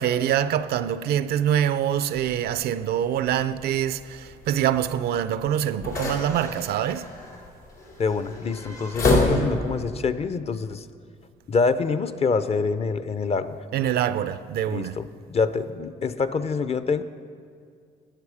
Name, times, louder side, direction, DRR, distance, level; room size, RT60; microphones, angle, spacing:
voice 1, 0.0-7.1 13.7-15.0, right 10 dB, 70° right, 0.4 m, -25 dB
sound 1, 2.2-9.9, left 2 dB, 90° left, 2.6 m, -29 dB
voice 2, 8.0-10.9 11.5-13.6 14.7-17.0, left 4 dB, 40° left, 0.6 m, -26 dB
13.5 x 8.4 x 4.9 m
supercardioid pair, 75°, 17 cm